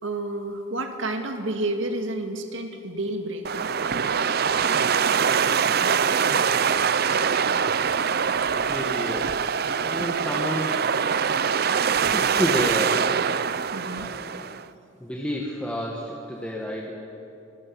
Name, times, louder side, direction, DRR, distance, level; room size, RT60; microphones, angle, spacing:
voice 1, 0.0-4.1 10.0-10.3 13.7-14.1, right 2 dB, 65° right, 4 dB, 2.2 m, -31 dB
sound 1, 3.4-14.6, right 6 dB, 50° right, 0.5 m, -23 dB
voice 2, 8.4-9.3 9.6-10.7 11.8-13.0 13.2-14.4 15.0-16.9, equal, 5° left, -3 dB, 1.9 m, -31 dB
26.0 x 20.5 x 7.3 m, 2.8 s
head